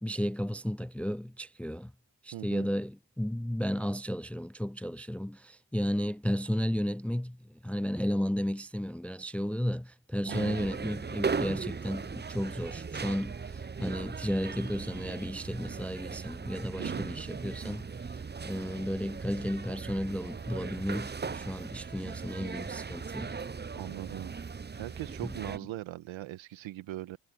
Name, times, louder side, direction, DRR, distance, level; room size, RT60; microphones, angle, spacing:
voice 1, 0.0-1.9 2.2-7.4 7.6-17.9 18.1-23.4 25.2-25.3, equal, 5° left, 0.5 m, -33 dB
voice 2, 2.3-2.7 10.3-10.7 16.8-17.1 23.8-24.3 24.7-27.2, right 15 dB, 80° right, 1.7 m, -40 dB
sound 1, 10.3-25.6, right 5 dB, 20° right, 0.9 m, -38 dB
supercardioid pair, 50°, 46 cm